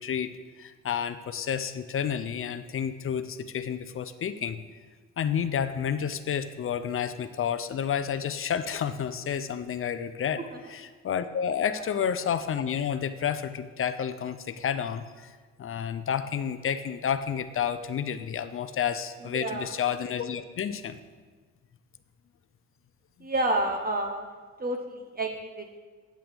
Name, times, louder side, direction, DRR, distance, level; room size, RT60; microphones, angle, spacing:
voice 1, 0.0-4.6 5.2-10.4 10.7-21.0, left 8 dB, 45° left, 12 dB, 0.6 m, -30 dB
voice 2, 19.3-19.7 23.2-24.3 24.6-25.8, right 1 dB, 30° right, 3 dB, 1.0 m, -29 dB
15.0 x 7.6 x 3.5 m, 1.4 s
cardioid pair, 90°, 30 cm